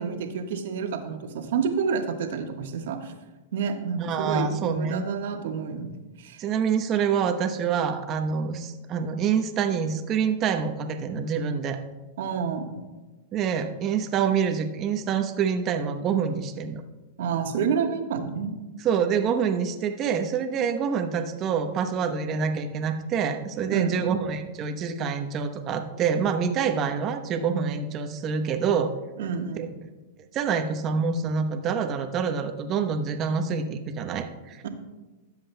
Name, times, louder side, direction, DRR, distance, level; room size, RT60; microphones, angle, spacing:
voice 1, 0.0-3.1 3.5-6.4 12.2-12.9 17.2-18.6 23.7-24.1 29.2-29.7 34.6-34.7, right 6 dB, 75° right, 4 dB, 1.3 m, -29 dB
voice 2, 4.0-5.1 6.4-11.8 13.3-16.8 18.8-28.9 29.6-29.9 30.3-34.6, right 6 dB, 35° right, 7 dB, 0.9 m, -26 dB
17.5 x 7.6 x 2.2 m, 1.2 s
hypercardioid pair, 135°, 0 cm